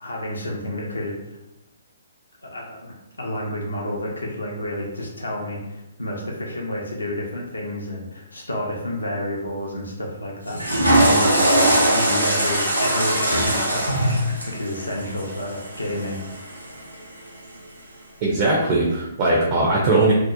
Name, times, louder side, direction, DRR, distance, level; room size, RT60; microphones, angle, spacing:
voice 1, 0.0-1.4 2.4-16.2 16.5-16.7, left 1 dB, 75° left, -2 dB, 0.5 m, -30 dB
Water / Toilet flush, 10.4-16.7, right 1 dB, 85° right, 0.6 m, -21 dB
voice 2, 18.2-20.1, right 2 dB, 35° right, -3 dB, 0.4 m, -19 dB
2.6 x 2.0 x 2.5 m, 0.91 s
figure-of-eight pair, 130°, 0 cm